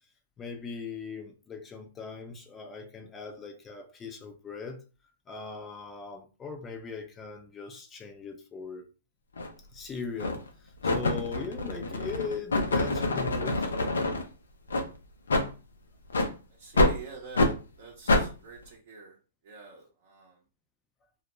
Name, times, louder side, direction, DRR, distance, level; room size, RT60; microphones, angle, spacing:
voice 1, 0.4-4.8 5.3-8.8 9.7-13.7, left 5 dB, 20° left, 0.5 m, -39 dB
sound 1, 9.4-9.5 10.2-10.5 10.8-14.2 14.7-14.9 15.3-15.5 16.1-16.3 16.8-17.0 17.3-17.5 18.1-18.3, left 2 dB, 85° left, 0.5 m, -26 dB
voice 2, 16.5-19.2 19.4-20.4, right 5 dB, 55° right, 0.7 m, -46 dB
2.3 x 2.1 x 2.9 m
hypercardioid pair, 125°, 0 cm